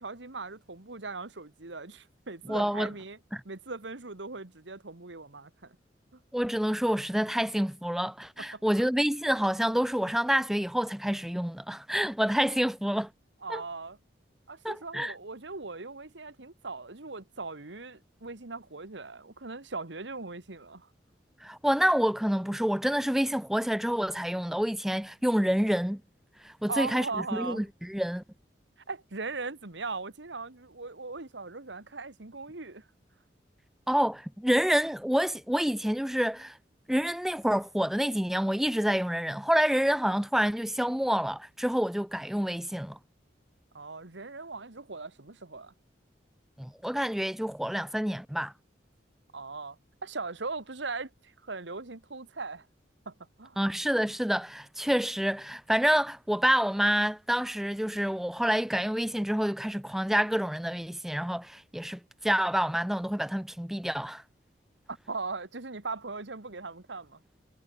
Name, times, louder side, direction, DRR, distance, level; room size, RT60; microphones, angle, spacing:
voice 1, 0.0-3.2 3.5-5.8 6.1-6.2 8.5-8.9 13.4-14.0 14.5-20.9 26.7-27.7 28.9-32.9 43.7-45.7 49.3-49.8 50.0-52.7 53.1-53.6 64.9-67.2, right 3 dB, 85° right, 1.8 m, -39 dB
voice 2, 2.5-2.9 3.3-3.4 6.3-13.1 13.5-13.6 14.6-15.1 21.4-26.0 26.4-27.1 27.3-28.2 33.9-36.6 36.9-43.0 46.6-48.5 53.6-64.2, equal, ahead, 0.3 m, -28 dB
head